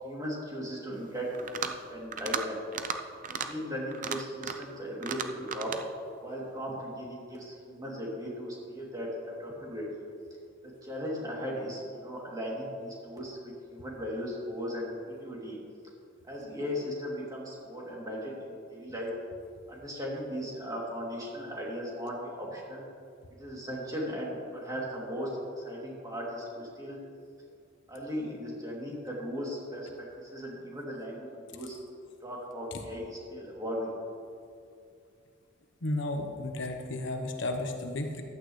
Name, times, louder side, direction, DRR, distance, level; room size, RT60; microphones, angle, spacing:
voice 1, 0.0-1.5 1.9-2.6 3.3-5.7 6.2-10.0 10.8-13.4 13.7-15.6 16.2-19.1 19.7-22.8 23.4-27.0 27.9-31.8 32.2-33.9, equal, 20° right, -4 dB, 2.9 m, -37 dB
sound 1, 1.3-1.8 2.1-2.4 2.7-3.0 3.2-3.5 3.9-4.7 5.0-5.8, right 6 dB, 40° right, 0.6 m, -34 dB
voice 2, 35.8-38.2, left 2 dB, 65° left, 4 dB, 1.1 m, -33 dB
14.5 x 12.0 x 3.2 m, 2.4 s
head